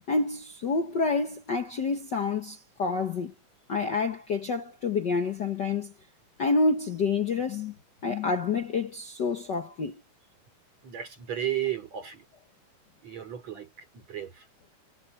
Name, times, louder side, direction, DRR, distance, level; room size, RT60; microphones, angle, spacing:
voice 1, 0.1-3.3 3.7-5.9 6.4-7.7 8.0-10.0, left 4 dB, 55° left, 1.2 m, -28 dB
voice 2, 10.8-12.2 13.0-14.5, right 11 dB, 55° right, 5.1 m, -34 dB
omnidirectional pair, 3.6 m